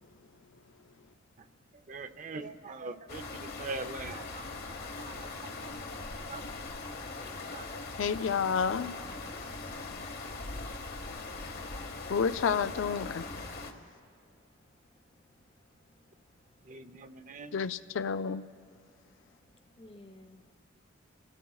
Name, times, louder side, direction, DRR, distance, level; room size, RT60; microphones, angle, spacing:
voice 1, 0.0-2.1 13.3-17.6 18.7-20.5, left 1 dB, 25° left, 7 dB, 0.7 m, -64 dB
voice 2, 1.9-6.4 7.2-7.8 9.3-9.5 16.6-17.6, right 3 dB, 40° right, 10 dB, 0.6 m, -44 dB
sound 1, 3.1-13.7, left 3 dB, 50° left, 1.1 m, -41 dB
voice 3, 8.0-9.0 12.1-13.3 17.5-18.4, left 6 dB, 75° left, 11 dB, 0.4 m, -30 dB
29.5 x 16.5 x 2.3 m, 2.3 s
head